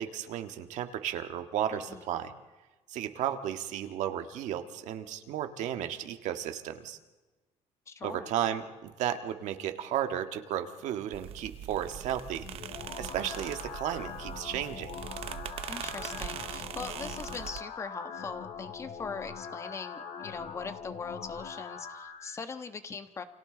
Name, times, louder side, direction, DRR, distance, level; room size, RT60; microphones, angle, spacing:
voice 1, 0.0-2.3 2.9-7.0 8.0-12.5 13.0-14.9, right 10 dB, 90° right, 7 dB, 1.7 m, -34 dB
voice 2, 7.9-8.3 15.7-23.2, left 5 dB, 25° left, 9 dB, 1.2 m, -41 dB
sound 1, 11.1-17.6, right 11 dB, 55° right, 0.8 m, -41 dB
sound 2, 12.4-22.4, left 6 dB, 80° left, 5.5 m, -42 dB
29.5 x 26.0 x 3.9 m, 1.2 s
cardioid pair, 180°, 12 cm